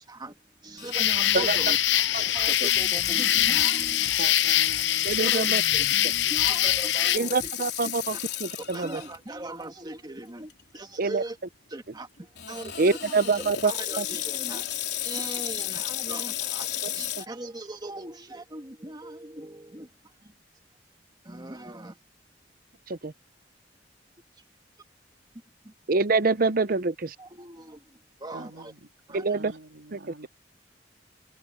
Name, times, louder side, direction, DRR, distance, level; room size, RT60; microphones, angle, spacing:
voice 1, 0.0-2.0 2.3-4.2 5.2-5.4 5.7-5.9 6.2-8.2 8.7-11.4 11.7-14.7 15.0-20.3 21.2-22.0 25.6-25.7 27.2-28.7 29.1-29.4, right 2 dB, 25° right, 1.9 m, -40 dB
Water tap faucet / Sink (filling or washing), 0.8-9.2 9.7-9.8 10.5-10.8 12.4-17.3, left 12 dB, 65° left, 4.3 m, -34 dB
sound 1, 0.9-7.2, left 13 dB, 80° left, 0.7 m, -24 dB
sound 2, 1.5-7.5, left 2 dB, 40° left, 5.7 m, -46 dB
voice 2, 4.2-6.6 28.3-30.3, right 3 dB, 90° right, 3.0 m, -45 dB
voice 3, 5.0-5.6 7.1-9.0 11.0-11.2 12.8-13.7 14.0-14.1 22.9-23.1 25.9-27.1 29.1-29.5 29.9-30.3, right 3 dB, 50° right, 0.8 m, -25 dB
head